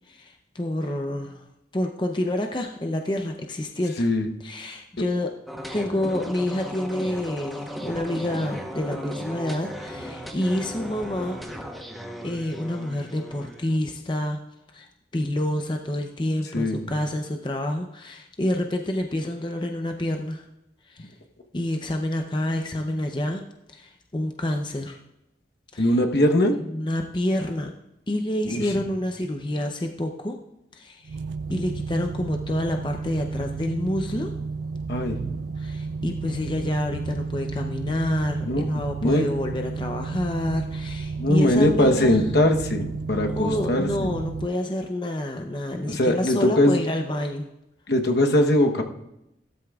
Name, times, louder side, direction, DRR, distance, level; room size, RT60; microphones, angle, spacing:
voice 1, 0.1-1.4 1.7-4.1 4.4-5.3 5.7-11.4 12.2-14.4 14.7-14.9 15.1-20.4 20.9-21.1 21.5-23.4 23.7-25.0 25.7-25.9 26.6-27.7 28.1-30.4 30.7-31.2 31.5-34.3 35.6-42.2 43.3-47.5, left 1 dB, 25° left, 3 dB, 0.6 m, -28 dB
voice 2, 4.0-4.3 16.5-16.8 25.8-26.6 28.5-28.7 34.9-35.4 38.4-38.6 39.0-39.3 41.2-44.1 45.9-46.8 47.9-48.8, left 1 dB, 65° left, 4 dB, 1.0 m, -21 dB
sound 1, 5.5-13.8, equal, ahead, 0.9 m, -36 dB
sound 2, 31.0-44.5, right 4 dB, 90° right, 0.4 m, -32 dB
16.0 x 13.0 x 2.4 m, 0.88 s
head